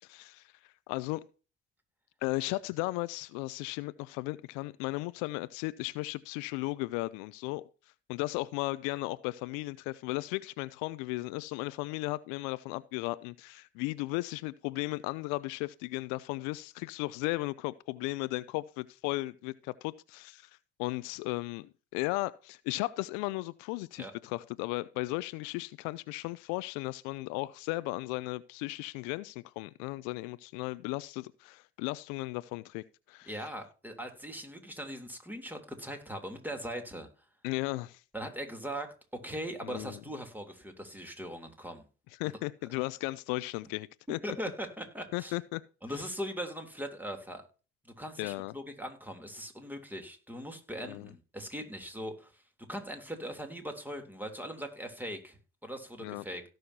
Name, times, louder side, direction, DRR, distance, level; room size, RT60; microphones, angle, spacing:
voice 1, 0.0-0.5 0.9-1.2 2.2-7.6 8.1-20.5 20.8-33.3 37.4-38.0 39.6-40.0 42.2-44.2 45.1-45.6 48.2-48.5 50.8-51.1 56.0-56.2, left 21 dB, 80° left, 0.5 m, -35 dB
voice 2, 33.3-37.1 38.1-41.9 42.2-42.4 44.2-45.4 45.8-47.4 47.8-52.4 52.7-56.4, equal, 5° right, 3.2 m, -40 dB
17.5 x 6.4 x 2.8 m
hypercardioid pair, 55°, 30 cm